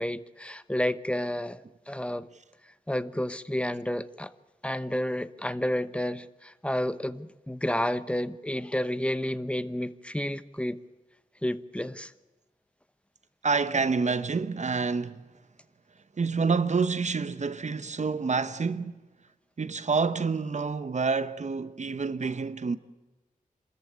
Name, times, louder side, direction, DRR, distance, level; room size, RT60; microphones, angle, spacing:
voice 1, 0.0-2.3 2.9-4.3 4.6-10.8 11.4-12.1, left 1 dB, 10° left, 0.9 m, -30 dB
voice 2, 13.4-15.2 16.2-19.0 19.6-22.8, right 4 dB, 55° right, 1.0 m, -28 dB
26.5 x 14.0 x 9.6 m
wide cardioid pair, 70°, 14 cm